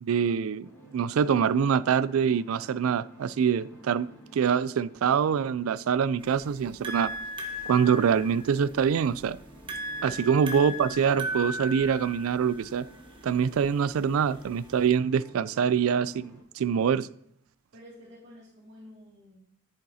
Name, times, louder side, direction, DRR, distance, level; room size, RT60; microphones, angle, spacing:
voice 1, 0.0-7.1 7.7-9.4 10.0-12.9 13.2-17.1, right 7 dB, 85° right, 0.3 m, -25 dB
sound 1, 0.6-16.4, equal, 10° left, 4.2 m, -53 dB
sound 2, 6.2-14.9, equal, 25° right, 1.1 m, -38 dB
voice 2, 16.8-17.3 17.7-19.4, left 1 dB, 55° right, 2.3 m, -51 dB
10.5 x 8.6 x 2.8 m
head